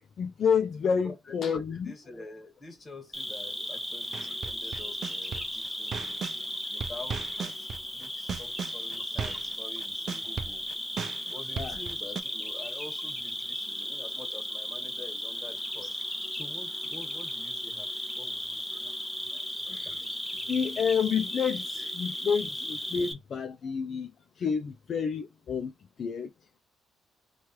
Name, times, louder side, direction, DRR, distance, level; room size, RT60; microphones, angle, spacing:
voice 1, 0.2-1.9 11.6-11.8 19.7-20.0 20.5-24.1 24.4-25.7 26.0-26.3, left 6 dB, 55° left, 0.3 m, -29 dB
voice 2, 1.0-6.2 6.7-10.6 11.3-16.0 16.3-18.9 19.3-19.5 23.6-23.7, left 2 dB, 30° left, 1.4 m, -47 dB
Cricket, 3.1-23.1, equal, 5° left, 0.7 m, -36 dB
sound 1, 4.1-6.4 6.8-12.2, right 6 dB, 55° right, 0.4 m, -36 dB
3.1 x 2.3 x 2.9 m
cardioid pair, 90°, 0 cm